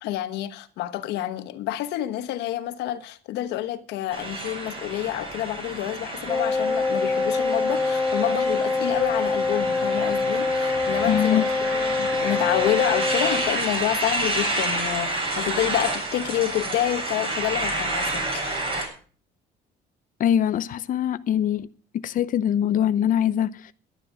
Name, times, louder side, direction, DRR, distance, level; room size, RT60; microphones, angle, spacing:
voice 1, 0.0-18.6, left 13 dB, 85° left, 1.2 m, -28 dB
sound 1, 4.1-18.9, right 2 dB, 35° right, 7.1 m, -29 dB
Wind instrument woodwind instrument, 6.3-13.6, left 3 dB, 10° left, 0.6 m, -25 dB
voice 2, 11.0-11.4 20.2-23.7, left 10 dB, 50° left, 0.7 m, -23 dB
11.5 x 10.5 x 6.3 m
cardioid pair, 110°, 17 cm